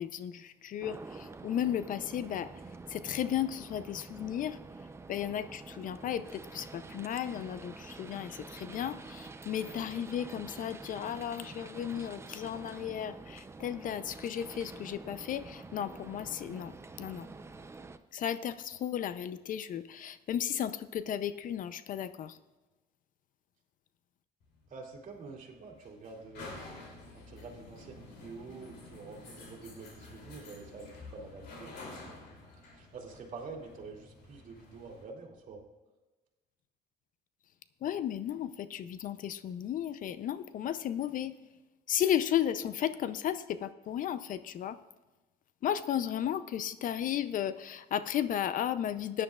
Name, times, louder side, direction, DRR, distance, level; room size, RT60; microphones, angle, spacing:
voice 1, 0.0-2.5 2.9-4.6 5.1-17.3 18.1-22.4 37.8-41.3 41.9-44.8 45.6-49.2, left 10 dB, 55° left, 14 dB, 0.5 m, -34 dB
sound 1, 0.8-18.0, right 3 dB, 15° right, 0.5 m, -47 dB
sound 2, 24.4-35.0, left 3 dB, 75° left, 3.0 m, -50 dB
voice 2, 24.7-26.6 27.1-31.7 32.7-35.6, right 4 dB, 50° right, 0 dB, 2.5 m, -47 dB
16.0 x 10.0 x 2.4 m, 1.1 s
cardioid pair, 110°, 17 cm